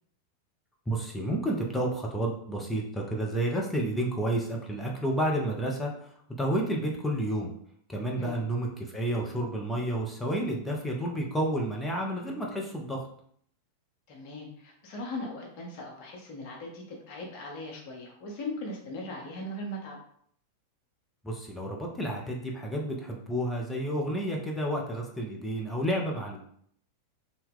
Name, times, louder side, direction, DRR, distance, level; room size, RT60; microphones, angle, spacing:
voice 1, 0.9-6.1 6.4-7.5 7.9-13.0 21.2-26.4, right 1 dB, 10° left, -1 dB, 0.6 m, -30 dB
voice 2, 14.1-20.0, left 1 dB, 45° left, -1 dB, 0.7 m, -39 dB
2.8 x 2.1 x 3.6 m, 0.64 s
figure-of-eight pair, 90°, 0 cm